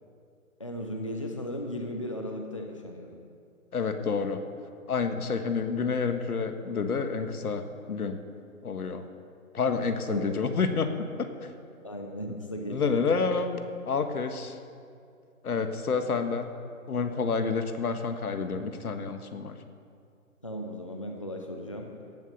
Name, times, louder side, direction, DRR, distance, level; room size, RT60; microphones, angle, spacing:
voice 1, 0.6-3.2 10.1-10.3 11.8-12.9 20.4-21.9, equal, 25° left, 2 dB, 0.6 m, -36 dB
voice 2, 3.7-4.4 4.9-8.2 8.6-9.0 9.5-11.5 12.7-14.6 15.4-16.5 16.9-19.6, left 5 dB, 90° left, 7 dB, 1.6 m, -29 dB
17.0 x 7.5 x 6.5 m, 2.3 s
hypercardioid pair, 175°, 43 cm